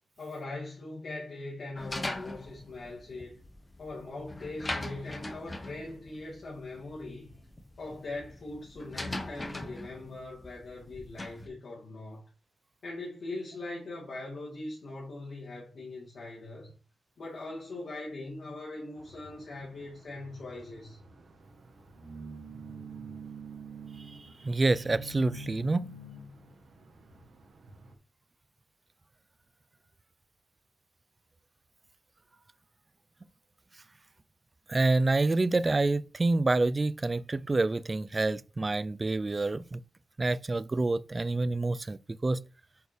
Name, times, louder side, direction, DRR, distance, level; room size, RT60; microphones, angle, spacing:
voice 1, 0.2-3.4 3.8-7.3 7.8-12.2 12.8-16.7 17.2-21.0 23.1-23.2, left 2 dB, 60° left, 2.2 m, -41 dB
sound 1, 1.8-11.5, left 2 dB, 20° left, 1.0 m, -41 dB
sound 2, 19.0-28.0, right 3 dB, 80° right, 1.4 m, -47 dB
voice 2, 24.0-25.9 34.7-39.8 40.2-42.4, right 2 dB, 25° right, 0.3 m, -27 dB
7.9 x 5.1 x 3.3 m
wide cardioid pair, 125°, 0 cm